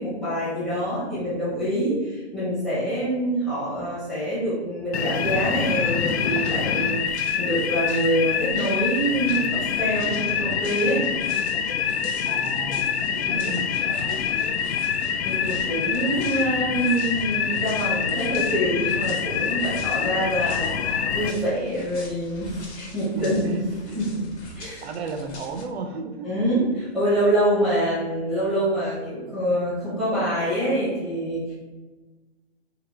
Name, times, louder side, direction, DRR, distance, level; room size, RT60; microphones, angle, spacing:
voice 1, 0.0-11.0 13.2-13.6 15.2-23.6 23.9-24.2 24.5-24.8 26.2-31.5, right 1 dB, ahead, -11 dB, 0.7 m, -25 dB
sound 1, 4.9-21.3, left 7 dB, 75° left, 0.5 m, -25 dB
sound 2, 6.1-25.6, left 2 dB, 90° left, 1.3 m, -44 dB
voice 2, 12.2-14.0 23.2-23.6 23.9-24.0 24.8-26.3 26.6-26.7, right 4 dB, 70° right, 6 dB, 0.6 m, -34 dB
3.9 x 2.5 x 3.2 m, 1.3 s
hypercardioid pair, 170°, 33 cm